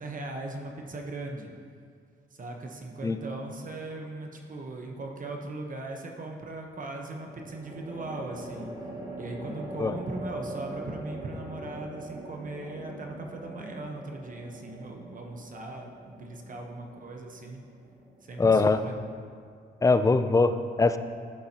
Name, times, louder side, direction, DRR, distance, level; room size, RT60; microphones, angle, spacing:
voice 1, 0.0-1.5 2.3-8.7 9.2-17.6 18.3-19.0, right 2 dB, 40° right, 2 dB, 1.0 m, -39 dB
sound 1, 4.0-4.6 7.1-18.5, right 1 dB, 20° right, 2.3 m, -42 dB
voice 2, 18.4-18.8 19.8-21.0, left 3 dB, 15° left, 11 dB, 0.4 m, -22 dB
12.5 x 7.5 x 2.9 m, 2.2 s
cardioid pair, 90°, 20 cm